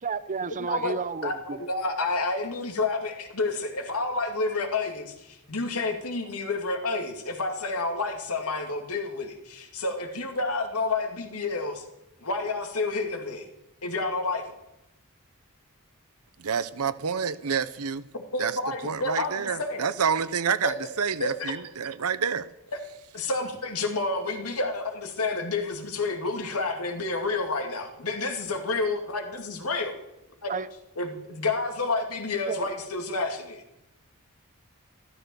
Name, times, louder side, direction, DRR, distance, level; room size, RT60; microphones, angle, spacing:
voice 1, 0.0-1.6 30.5-30.7 32.5-32.7, right 5 dB, 35° right, 0.7 m, -31 dB
voice 2, 1.2-11.8 12.2-13.4 13.8-14.4 18.1-19.9 20.6-20.7 21.2-21.5 22.7-22.8 23.1-30.0 30.4-30.5 31.0-33.6, left 3 dB, 85° left, 2.4 m, -29 dB
voice 3, 16.4-18.0 18.4-18.6 18.8-22.5, right 6 dB, 90° right, 0.8 m, -28 dB
13.5 x 13.5 x 7.0 m
head